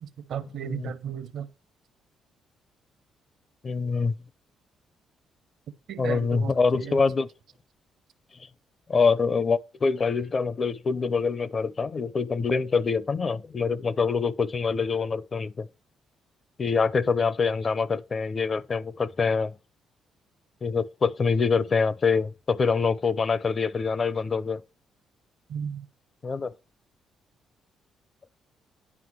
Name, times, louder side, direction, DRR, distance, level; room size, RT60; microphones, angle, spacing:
voice 1, 0.0-1.5 5.9-7.0 25.5-25.8, right 8 dB, 70° right, 1.0 m, -35 dB
voice 2, 0.6-0.9 3.6-4.1 6.0-7.3 8.9-15.7 16.6-19.5 20.6-24.6 26.2-26.5, left 5 dB, 40° left, 0.6 m, -25 dB
10.0 x 5.1 x 6.1 m
cardioid pair, 90°, 0 cm